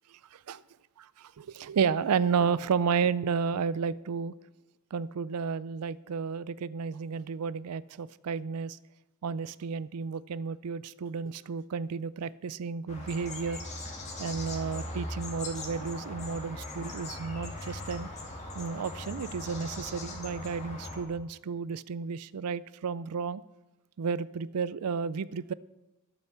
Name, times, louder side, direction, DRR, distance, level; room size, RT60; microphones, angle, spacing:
voice 1, 1.4-4.3 4.9-8.8 9.2-13.6 14.2-18.1 18.6-23.4 24.0-25.5, right 6 dB, 85° right, 18 dB, 0.4 m, -32 dB
sound 1, 12.9-21.0, left 2 dB, 30° left, 2.3 m, -40 dB
12.0 x 9.0 x 6.8 m, 1.0 s
head